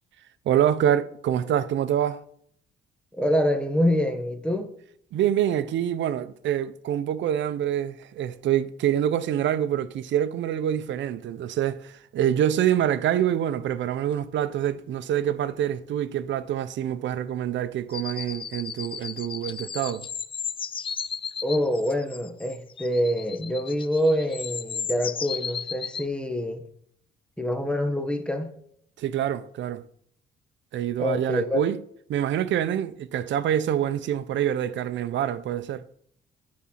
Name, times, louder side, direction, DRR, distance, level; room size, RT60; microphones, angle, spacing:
voice 1, 0.5-2.2 5.1-20.1 29.0-29.8 30.7-31.8 32.1-35.8, right 10 dB, 70° right, 0.6 m, -26 dB
voice 2, 3.1-4.7 21.4-26.6 27.4-28.5 31.0-31.6, equal, 5° left, 1.2 m, -26 dB
sound 1, 17.9-26.1, left 6 dB, 25° left, 0.3 m, -35 dB
9.9 x 4.1 x 5.7 m
cardioid pair, 90°, 20 cm